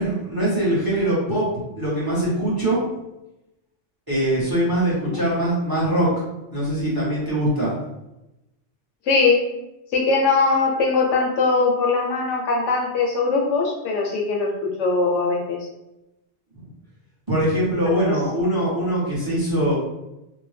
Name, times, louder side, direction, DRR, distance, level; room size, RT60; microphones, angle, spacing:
voice 1, 0.0-1.4 1.8-2.9 4.1-6.1 6.5-7.7 17.3-19.7, right 1 dB, 20° right, -7 dB, 0.8 m, -22 dB
voice 2, 9.0-9.4 9.9-15.6 18.1-18.2, left 4 dB, 75° left, 0 dB, 0.9 m, -21 dB
2.7 x 2.1 x 3.2 m, 0.94 s
omnidirectional pair, 1.3 m